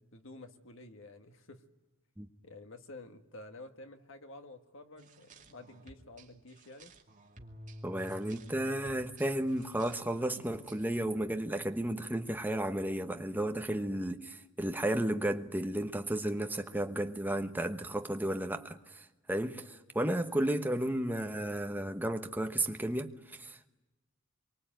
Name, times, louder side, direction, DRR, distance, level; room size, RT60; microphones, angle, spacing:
voice 1, 0.0-1.6 2.4-6.9, left 2 dB, 65° left, 1.9 m, -51 dB
sound 1, 5.0-11.0, equal, 35° right, 2.4 m, -52 dB
voice 2, 7.8-23.7, right 1 dB, 10° right, 1.2 m, -33 dB
25.5 x 24.0 x 9.1 m
head